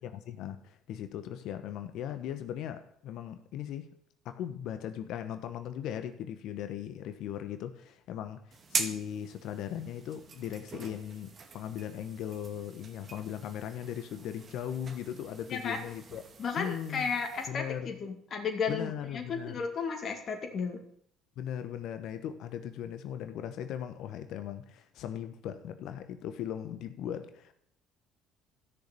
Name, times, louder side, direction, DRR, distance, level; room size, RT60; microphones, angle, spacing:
voice 1, 0.0-3.9 4.2-16.2 16.6-17.1 17.5-17.9 18.7-19.6 21.4-27.5, left 10 dB, 65° left, 1.0 m, -38 dB
sound 1, 8.5-17.5, right 5 dB, 40° right, 2.0 m, -42 dB
voice 2, 15.5-15.8 16.4-20.8, left 5 dB, 45° left, 2.2 m, -34 dB
13.0 x 6.7 x 8.4 m
hypercardioid pair, 60°, 0 cm